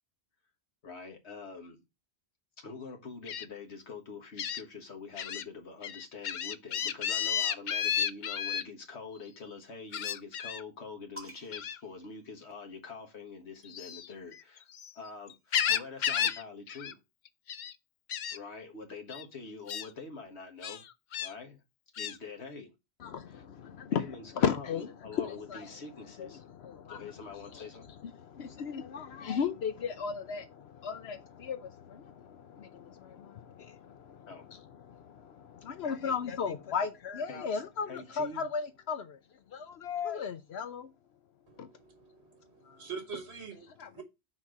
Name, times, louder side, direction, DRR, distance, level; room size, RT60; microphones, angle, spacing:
voice 1, 0.8-1.8 2.6-14.7 15.0-17.0 18.3-20.8 21.2-21.6 22.0-22.7 23.3-23.4 23.9-26.4 26.9-27.9 34.3-34.5 37.3-37.6 37.9-38.4, left 4 dB, 90° left, 1.7 m, -45 dB
Gull seagull, 3.3-3.4 4.4-4.6 5.2-5.4 5.8-8.6 9.9-10.6 11.5-11.8 13.6-14.9 15.3-16.4 16.7-16.9 17.2-17.7 18.1-18.4 19.1-19.2 19.7-19.9 20.6-21.3 22.0-22.2, left 9 dB, 55° left, 0.6 m, -32 dB
sound 1, 11.2-13.0 14.1-15.7, equal, 10° right, 1.8 m, -53 dB
voice 2, 23.0-25.8 26.0-39.2 39.8-40.9 41.6-41.7 42.6-42.9 43.8-44.0, left 6 dB, 75° left, 0.9 m, -36 dB
voice 3, 41.5-44.0, right 6 dB, 85° right, 1.7 m, -45 dB
6.0 x 4.4 x 6.3 m
omnidirectional pair, 1.1 m